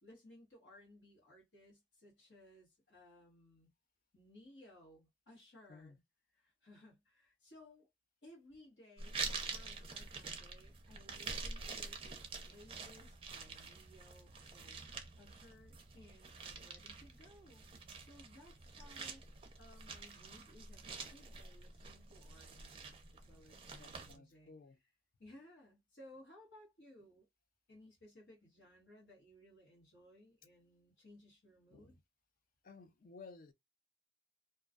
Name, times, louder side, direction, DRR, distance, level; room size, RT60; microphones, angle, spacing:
voice 1, 0.0-3.7 4.1-6.0 6.3-7.9 8.2-14.9 15.2-17.7 18.0-24.5 25.2-27.3 27.7-31.9, left 1 dB, 70° left, 1.2 m, -61 dB
sound 1, 9.0-24.2, right 4 dB, 30° right, 0.5 m, -47 dB
voice 2, 23.7-24.8 31.7-31.9 32.6-33.5, left 4 dB, 50° left, 0.4 m, -56 dB
2.3 x 2.2 x 2.4 m
head